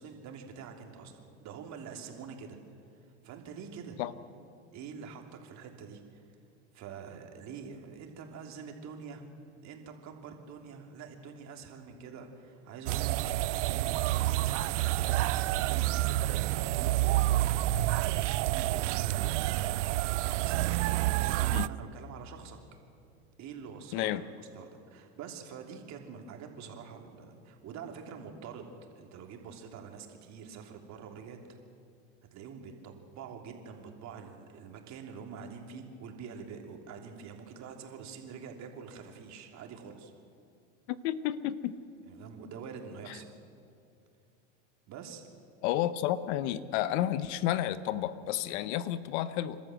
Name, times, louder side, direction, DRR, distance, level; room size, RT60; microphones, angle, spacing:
voice 1, 0.0-2.6 3.2-4.0 4.7-6.2 6.7-9.2 9.6-22.6 23.4-24.3 24.5-31.4 32.3-40.1 42.1-43.3 44.9-45.2, right 6 dB, 50° right, 3 dB, 3.2 m, -46 dB
sound 1, 12.9-21.7, right 16 dB, 80° right, 0.6 m, -28 dB
voice 2, 23.9-24.2 40.9-41.8 45.6-49.6, left 12 dB, 65° left, 15 dB, 1.0 m, -31 dB
29.0 x 13.0 x 7.8 m, 2.4 s
supercardioid pair, 105°, 36 cm